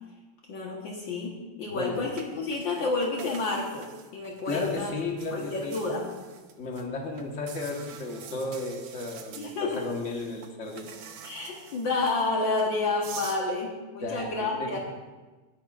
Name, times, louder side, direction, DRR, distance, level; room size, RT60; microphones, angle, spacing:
voice 1, 0.5-4.9 5.3-6.1 9.4-9.8 11.2-14.8, left 3 dB, 60° left, -2 dB, 1.9 m, -30 dB
voice 2, 1.7-2.1 4.5-5.8 6.6-10.9 14.0-14.8, left 3 dB, 40° left, 1 dB, 1.5 m, -34 dB
sound 1, 2.1-6.8 7.2-13.4, right 7 dB, 70° right, 1.6 m, -46 dB
18.5 x 10.0 x 2.5 m, 1.2 s
omnidirectional pair, 2.4 m